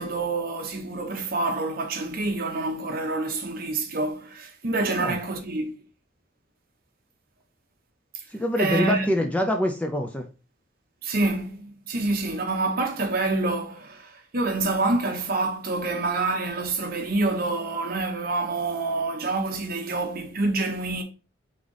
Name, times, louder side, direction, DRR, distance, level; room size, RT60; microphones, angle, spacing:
voice 1, 0.0-5.7 8.6-9.1 11.0-21.0, right 2 dB, 50° right, 0.9 m, -27 dB
voice 2, 8.3-10.3, left 1 dB, 5° left, 0.4 m, -25 dB
3.6 x 3.3 x 3.8 m
head